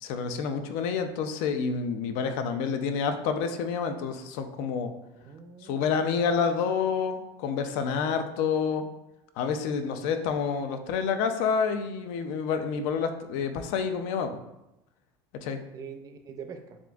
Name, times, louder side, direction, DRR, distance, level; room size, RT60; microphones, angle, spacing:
voice 1, 0.0-4.9 5.6-8.8 9.4-14.4 15.4-15.6, left 6 dB, 65° left, 8 dB, 0.5 m, -28 dB
voice 2, 5.1-6.5 15.7-16.8, right 6 dB, 30° right, 6 dB, 0.4 m, -44 dB
7.1 x 2.5 x 2.3 m, 0.90 s
cardioid pair, 150°, 12 cm